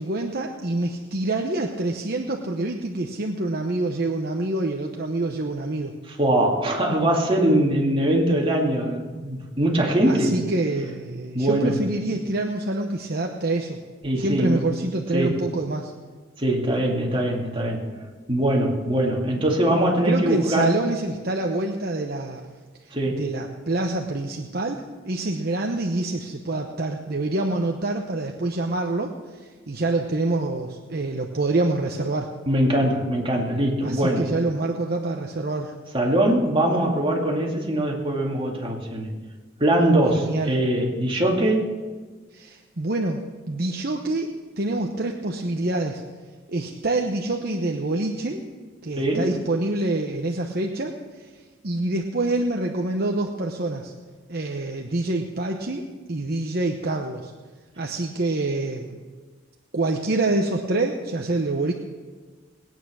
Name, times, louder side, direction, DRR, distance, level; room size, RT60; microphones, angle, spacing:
voice 1, 0.0-5.9 10.0-13.8 14.2-15.9 20.1-22.4 23.1-32.3 33.8-35.7 40.1-40.5 42.3-46.0 46.5-48.4 48.8-51.3 51.6-53.9 54.3-57.3 57.8-59.0 59.7-61.7, right 2 dB, 50° right, 2 dB, 1.0 m, -26 dB
voice 2, 6.2-10.4 11.3-11.8 14.0-14.6 15.1-15.3 16.4-17.8 18.3-20.7 22.9-23.2 32.5-34.3 35.9-39.1 39.6-41.7 49.0-49.3, right 1 dB, 25° right, -1 dB, 2.4 m, -22 dB
20.0 x 9.3 x 6.3 m, 1.4 s
head